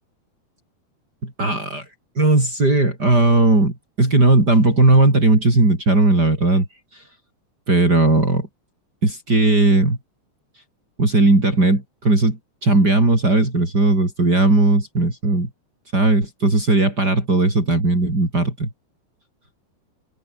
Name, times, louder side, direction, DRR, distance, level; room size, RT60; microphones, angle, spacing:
voice 1, 1.2-1.8 2.2-6.7 7.7-8.5 9.0-10.0 11.0-15.5 15.9-18.7, right 2 dB, 30° right, 6.4 m, -17 dB
omnidirectional pair, 3.6 m